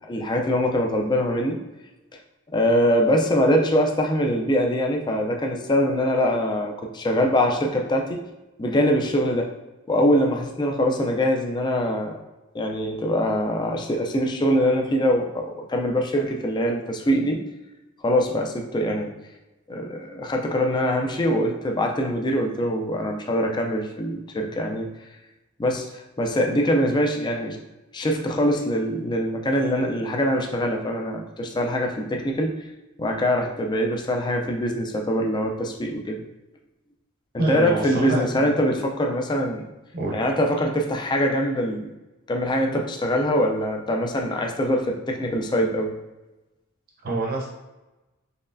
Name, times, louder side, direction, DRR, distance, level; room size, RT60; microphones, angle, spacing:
voice 1, 0.1-1.6 2.5-8.2 8.6-9.5 9.9-12.2 12.5-17.4 18.0-19.1 19.7-24.9 25.6-27.6 27.9-32.6 33.0-36.2 37.3-39.7 40.1-41.9 42.3-45.9, equal, 20° left, 2 dB, 0.4 m, -23 dB
voice 2, 37.4-38.5 39.9-40.2 47.0-47.5, right 2 dB, 40° right, -2 dB, 0.6 m, -26 dB
4.2 x 3.1 x 2.5 m, 1.1 s
head